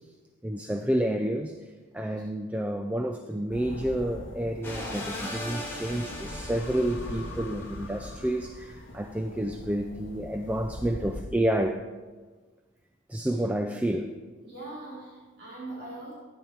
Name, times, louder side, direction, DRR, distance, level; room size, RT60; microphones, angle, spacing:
voice 1, 0.4-1.5 1.9-11.8 13.1-14.1, right 1 dB, 5° right, 5 dB, 0.4 m, -29 dB
sound 1, 3.5-11.2, left 1 dB, 65° left, 1.0 m, -42 dB
sound 2, 4.6-8.1, left 1 dB, 10° left, 2.5 m, -39 dB
voice 2, 14.4-16.1, right 2 dB, 55° right, -8 dB, 4.2 m, -41 dB
15.0 x 10.5 x 4.7 m, 1.4 s
head